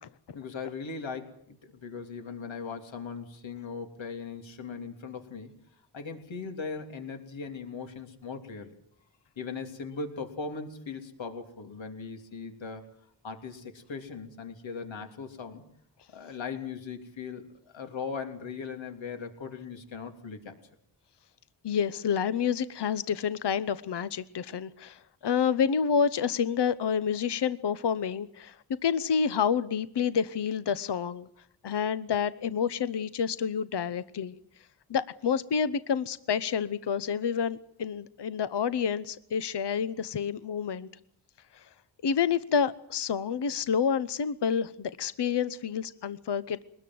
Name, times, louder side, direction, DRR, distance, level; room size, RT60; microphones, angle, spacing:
voice 1, 0.3-5.5 5.9-8.7 9.4-12.8 13.2-15.6 16.1-20.6, left 5 dB, 80° left, 5 dB, 3.2 m, -39 dB
voice 2, 21.6-31.3 31.6-34.3 34.9-40.9 41.5-41.7 42.0-46.6, left 7 dB, 65° left, 14 dB, 0.9 m, -29 dB
23.0 x 20.5 x 7.8 m, 0.67 s
cardioid pair, 75°, 45 cm